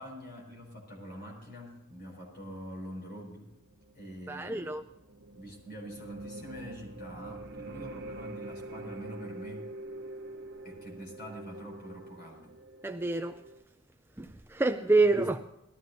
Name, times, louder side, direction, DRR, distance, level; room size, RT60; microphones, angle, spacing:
voice 1, 0.0-3.5 3.9-4.9 5.3-9.7 10.6-12.5, equal, 45° left, 5.6 m, -45 dB
sound 1, 3.4-13.6, right 2 dB, 50° right, 0.9 m, -45 dB
voice 2, 4.3-4.8 12.8-13.4 14.2-15.4, right 3 dB, 10° right, 0.4 m, -27 dB
19.0 x 14.5 x 2.7 m
head